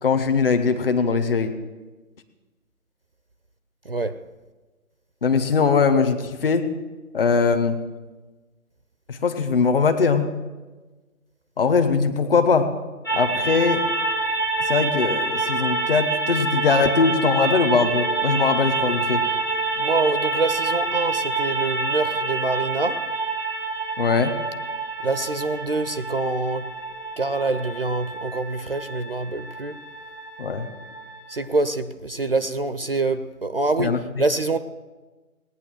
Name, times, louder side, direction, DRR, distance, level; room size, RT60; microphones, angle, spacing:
voice 1, 0.0-1.6 5.2-6.7 7.1-7.8 9.1-10.3 11.6-12.7 13.1-13.8 14.6-19.2 24.0-24.4 30.4-30.7 33.8-34.0, left 5 dB, 40° left, 1.2 m, -21 dB
voice 2, 3.8-4.2 19.8-23.1 25.0-26.7 27.2-29.8 31.3-34.6, right 3 dB, 40° right, 0.6 m, -25 dB
sound 1, 13.1-31.4, right 3 dB, 15° left, 0.7 m, -27 dB
18.0 x 9.5 x 7.6 m
figure-of-eight pair, 150°, 43 cm